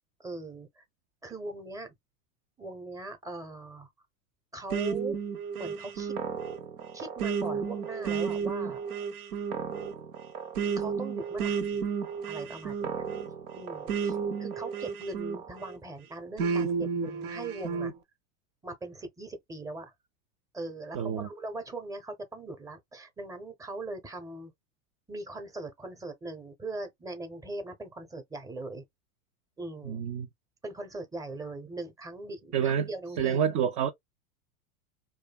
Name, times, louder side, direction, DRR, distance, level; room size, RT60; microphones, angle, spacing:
voice 1, 0.2-0.8 1.2-1.9 2.6-3.9 4.5-5.2 5.6-6.1 6.9-8.8 10.8-11.8 12.3-13.0 13.5-17.9 18.6-19.9 20.5-24.5 25.1-28.8 29.6-30.0 30.6-33.4, right 2 dB, 10° right, 0.7 m, -40 dB
sound 1, 4.7-15.8 16.4-17.9, right 6 dB, 90° right, 0.7 m, -32 dB
voice 2, 20.9-21.3 29.8-30.3 32.5-32.9 33.2-33.9, right 8 dB, 45° right, 0.4 m, -28 dB
2.6 x 2.2 x 2.2 m
hypercardioid pair, 100°, 42 cm